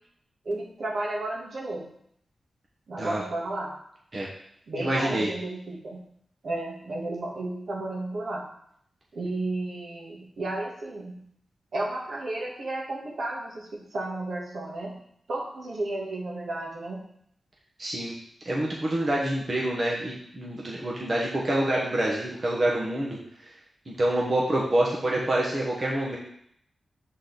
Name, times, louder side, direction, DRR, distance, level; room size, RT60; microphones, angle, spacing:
voice 1, 0.4-1.9 2.9-3.7 4.7-6.0 6.4-8.4 9.1-11.2 11.7-15.0 15.3-17.0, right 2 dB, 70° right, -2 dB, 1.5 m, -33 dB
voice 2, 4.8-5.3 17.8-18.1 18.4-23.5 23.9-26.2, right 1 dB, 40° right, -4 dB, 1.1 m, -27 dB
6.7 x 4.0 x 4.0 m, 0.69 s
wide cardioid pair, 105°, 0 cm